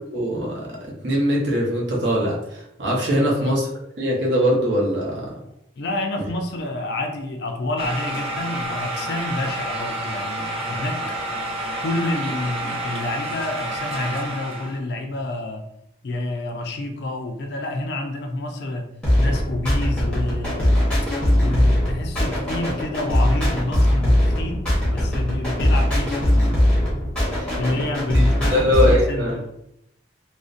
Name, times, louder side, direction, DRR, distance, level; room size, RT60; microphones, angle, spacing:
voice 1, 0.1-0.7 1.0-3.7 4.0-5.3 27.3-27.8 28.5-29.4, equal, 65° right, -3 dB, 0.7 m, -21 dB
voice 2, 3.1-3.5 5.8-11.0 11.8-15.6 16.0-20.9 21.4-26.5 27.6-29.4, left 2 dB, 55° left, 3 dB, 0.3 m, -28 dB
sound 1, 7.8-14.8, right 1 dB, 30° right, 0.4 m, -29 dB
sound 2, 19.0-29.0, left 1 dB, 5° left, 0.7 m, -20 dB
2.5 x 2.0 x 2.4 m, 0.80 s
head